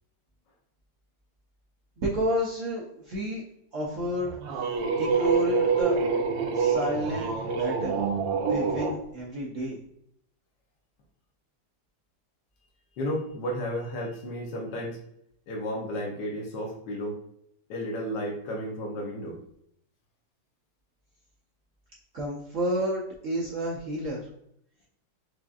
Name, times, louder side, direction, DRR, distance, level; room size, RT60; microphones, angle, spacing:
voice 1, 2.0-3.4 3.7-4.4 5.0-5.9 6.5-8.0 8.4-9.8 22.1-24.3, right 1 dB, 65° right, -3 dB, 0.8 m, -30 dB
sound 1, 4.1-9.0, right 5 dB, 90° right, 1.3 m, -27 dB
voice 2, 13.0-15.0 15.5-17.1 17.7-19.4, equal, 75° left, -1 dB, 1.3 m, -33 dB
4.8 x 2.5 x 2.3 m, 0.73 s
omnidirectional pair, 1.9 m